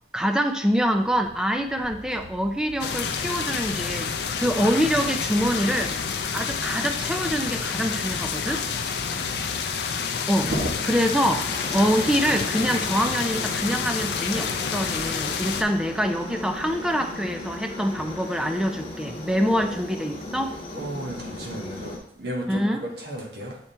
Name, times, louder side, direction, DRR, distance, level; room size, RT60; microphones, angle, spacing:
voice 1, 0.1-6.0 6.3-8.6 10.3-10.5 10.9-20.6 22.5-22.8, equal, 5° right, 6 dB, 0.3 m, -25 dB
sound 1, 1.8-9.4, right 1 dB, 85° right, 0.9 m, -46 dB
sound 2, 2.8-15.6, left 6 dB, 65° left, 0.5 m, -29 dB
voice 2, 9.1-9.7 10.4-10.7 18.0-18.1 19.5-19.7 20.7-23.6, right 1 dB, 60° right, -1 dB, 1.2 m, -33 dB
Aircraft, 11.4-22.0, left 2 dB, 30° left, 1.1 m, -37 dB
7.2 x 4.3 x 3.3 m, 0.72 s
head